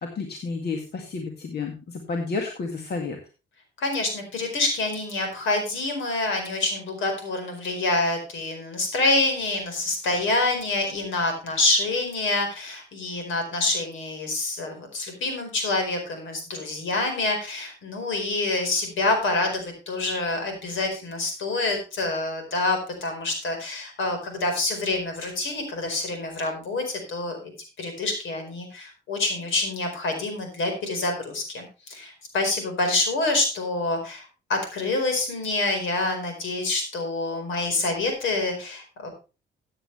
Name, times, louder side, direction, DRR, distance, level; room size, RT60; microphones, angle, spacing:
voice 1, 0.0-3.2, left 4 dB, 55° left, 3 dB, 2.1 m, -31 dB
voice 2, 3.8-27.4 27.8-39.1, left 2 dB, 75° left, 5 dB, 4.7 m, -27 dB
14.5 x 8.8 x 3.3 m, 0.31 s
cardioid pair, 90°, 20 cm